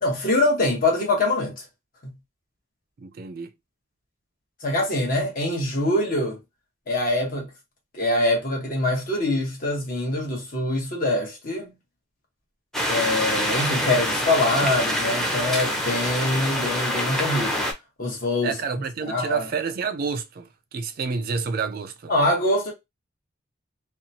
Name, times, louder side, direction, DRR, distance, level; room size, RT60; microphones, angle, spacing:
voice 1, 0.0-1.6 4.6-6.4 6.9-7.5 7.9-11.7 12.9-17.7 18.0-18.5 19.1-19.4 22.1-22.7, left 1 dB, 50° left, 1.1 m, -24 dB
voice 2, 3.0-3.5 18.4-22.1, right 5 dB, 50° right, 0.3 m, -29 dB
sound 1, 12.7-17.7, left 1 dB, ahead, 0.6 m, -25 dB
2.8 x 2.2 x 2.7 m
head